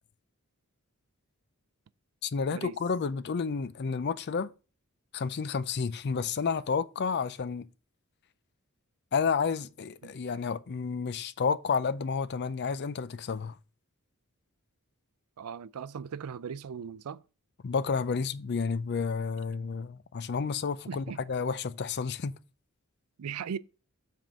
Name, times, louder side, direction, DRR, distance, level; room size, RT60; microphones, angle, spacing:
voice 1, 2.2-4.5 5.1-7.7 9.1-13.5 17.6-22.4, left 5 dB, 50° left, 0.4 m, -31 dB
voice 2, 15.4-17.2 20.9-21.2 23.2-23.6, right 7 dB, 80° right, 0.4 m, -38 dB
7.6 x 3.6 x 6.1 m
head